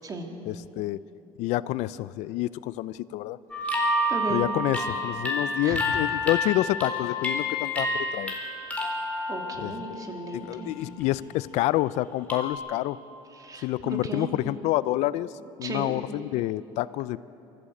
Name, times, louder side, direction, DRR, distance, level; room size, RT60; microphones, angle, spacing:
voice 1, 0.5-1.0 1.4-3.4 4.3-8.4 9.6-10.0 10.5-13.0 13.6-15.3 15.6-17.2, left 16 dB, 70° left, 17 dB, 0.5 m, -28 dB
sound 1, 3.5-10.4 10.8-11.2 12.3-12.5, left 1 dB, 10° left, 4.4 m, -29 dB
voice 2, 4.1-4.4 5.6-6.2 9.3-10.8 13.3-14.3 15.6-16.0, right 3 dB, 30° right, 2 dB, 3.0 m, -35 dB
24.0 x 14.5 x 8.4 m, 2.9 s
cardioid pair, 105°, 12 cm